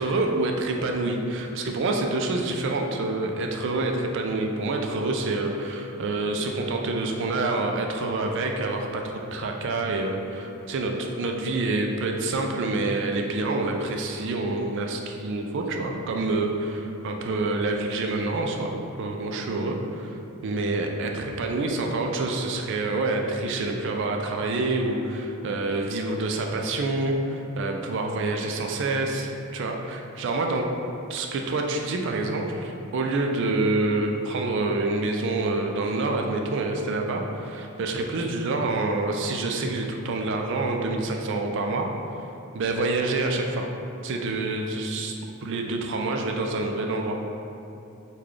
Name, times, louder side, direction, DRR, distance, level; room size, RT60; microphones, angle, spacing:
voice 1, 0.0-30.7 31.1-41.9 42.5-43.7 44.0-45.1 45.4-47.2, right 2 dB, 55° right, 2 dB, 0.3 m, -27 dB
3.2 x 2.2 x 3.7 m, 2.8 s
head